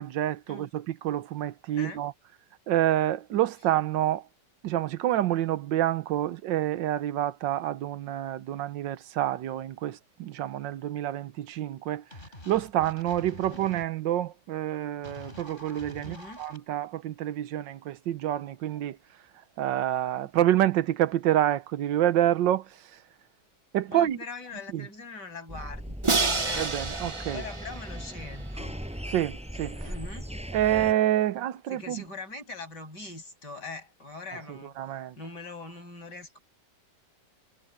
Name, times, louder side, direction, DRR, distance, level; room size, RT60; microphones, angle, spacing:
voice 1, 0.0-2.1 2.7-4.2 4.6-12.0 12.5-19.0 19.6-22.7 23.7-24.2 24.7-24.8 26.6-27.4 29.1-29.9 30.5-32.0 34.5-35.2, right 12 dB, 85° right, 1.5 m, -27 dB
sound 1, 12.1-13.8 15.0-16.6, left 1 dB, 25° left, 4.8 m, -45 dB
voice 2, 16.0-16.4 23.9-26.7 27.3-28.7 29.0-29.1 29.8-30.3 31.7-34.8 35.2-36.4, left 3 dB, 65° left, 8.8 m, -41 dB
sound 2, 25.5-30.9, equal, 5° right, 7.5 m, -38 dB
Crash cymbal, 26.0-29.0, right 4 dB, 25° right, 0.6 m, -30 dB
omnidirectional pair, 1.9 m